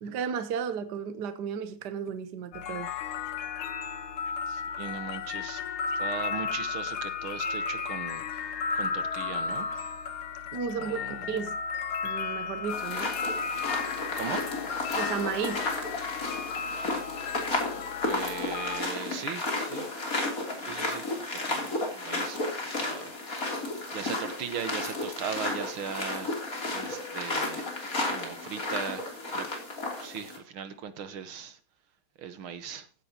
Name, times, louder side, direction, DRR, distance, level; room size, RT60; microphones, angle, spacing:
voice 1, 0.0-2.9 10.5-11.6 12.0-13.2 14.9-15.6, right 7 dB, 60° right, 1.5 m, -33 dB
sound 1, 2.5-18.8, left 6 dB, 80° left, 2.0 m, -34 dB
voice 2, 4.5-5.6 6.0-8.5 8.7-9.9 10.8-11.4 14.2-14.5 18.0-20.1 20.6-22.4 22.7-23.2 23.9-27.7 28.1-29.5 30.0-31.6 32.2-32.9, right 7 dB, 75° right, 2.1 m, -39 dB
sound 2, 12.7-30.4, left 2 dB, 40° left, 3.6 m, -33 dB
15.5 x 9.7 x 2.9 m
omnidirectional pair, 2.3 m